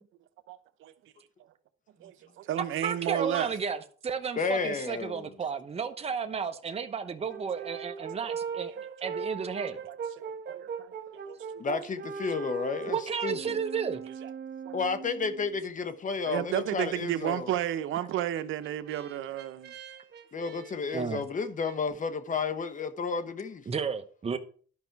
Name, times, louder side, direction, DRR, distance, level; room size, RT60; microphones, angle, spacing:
voice 1, 0.5-1.1 2.0-3.6 7.6-8.8 9.2-9.3 9.9-11.6 14.2-14.3 14.7-14.8 16.2-19.8, right 11 dB, 80° right, 0.8 m, -34 dB
voice 2, 2.8-8.7 9.0-9.8 12.9-14.0 20.9-21.2 23.7-24.4, right 6 dB, 30° right, 1.0 m, -33 dB
voice 3, 4.4-5.3 11.6-13.0 13.2-13.6 14.7-17.5 20.3-23.7, left 5 dB, 40° left, 1.0 m, -32 dB
Brass instrument, 7.3-15.6 18.1-21.8, right 6 dB, 60° right, 1.1 m, -40 dB
11.5 x 5.4 x 4.6 m
cardioid pair, 90°, 20 cm